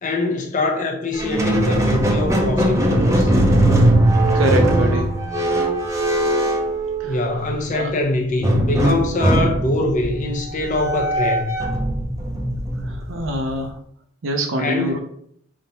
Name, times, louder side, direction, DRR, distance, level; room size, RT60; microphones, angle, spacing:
voice 1, 0.0-3.3 7.0-11.5 14.6-15.0, left 2 dB, 40° left, 0.8 m, -23 dB
Squeak, 1.1-7.5 8.4-13.6, right 1 dB, 15° right, 0.6 m, -20 dB
voice 2, 4.3-5.1 7.0-7.1 7.7-7.9 12.9-13.8 14.2-15.0, equal, 75° right, 0.6 m, -24 dB
3.6 x 2.7 x 4.1 m
head